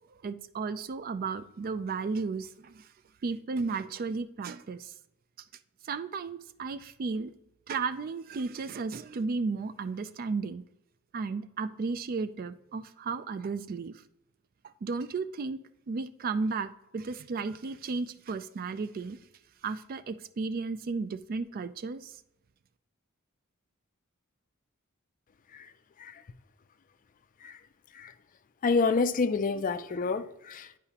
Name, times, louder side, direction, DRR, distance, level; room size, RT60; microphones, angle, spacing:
voice 1, 0.2-2.9 3.2-4.9 5.8-7.3 7.7-10.6 11.1-14.0 14.6-15.6 15.9-19.2 19.6-22.2, right 4 dB, 45° right, 0.3 m, -34 dB
voice 2, 28.6-30.8, left 4 dB, 40° left, 0.4 m, -27 dB
9.9 x 4.8 x 2.8 m
head